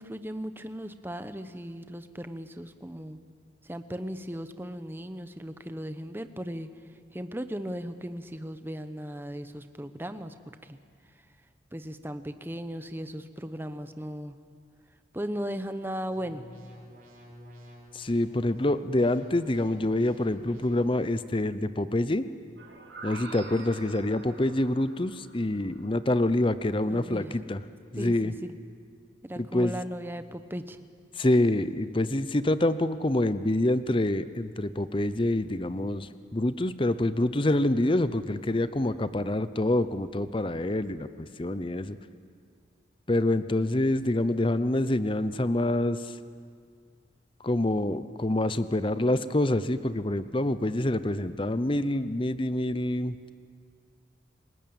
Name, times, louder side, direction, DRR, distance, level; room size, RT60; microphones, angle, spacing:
voice 1, 0.0-3.2 3.6-6.7 7.1-10.3 10.6-10.8 11.7-14.4 15.1-16.4 26.9-27.4 28.0-28.5 29.2-30.8, equal, 10° right, 10 dB, 1.0 m, -37 dB
sound 1, 16.1-21.1, equal, 50° right, 5.7 m, -49 dB
voice 2, 17.9-22.2 23.0-27.6 27.9-28.3 29.4-29.8 31.2-41.1 41.4-42.0 43.1-46.1 47.4-53.3, left 1 dB, 30° left, 13 dB, 0.7 m, -26 dB
sound 2, 22.6-26.3, right 3 dB, 80° right, 5.5 m, -46 dB
29.5 x 18.5 x 8.9 m, 2.1 s
head